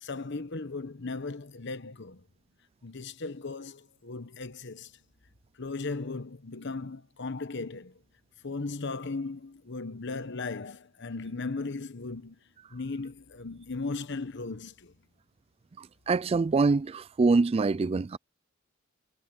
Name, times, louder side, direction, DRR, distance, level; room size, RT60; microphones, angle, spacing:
voice 1, 0.0-2.2 2.8-4.9 5.6-8.0 8.4-12.4 12.7-14.9, left 3 dB, 60° left, 1.1 m, -37 dB
voice 2, 15.8-18.2, right 3 dB, 30° right, 0.3 m, -25 dB
head